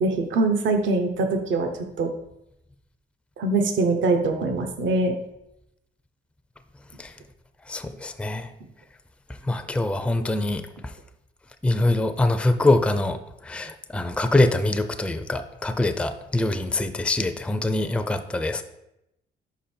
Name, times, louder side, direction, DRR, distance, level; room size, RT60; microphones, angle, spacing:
voice 1, 0.0-1.7 2.0-2.1 3.4-5.1, right 3 dB, 70° right, 6 dB, 0.8 m, -23 dB
voice 2, 7.7-8.5 9.4-10.9 11.6-18.6, left 2 dB, 5° left, 8 dB, 0.4 m, -24 dB
5.2 x 5.1 x 4.3 m, 0.86 s
cardioid pair, 90°, 20 cm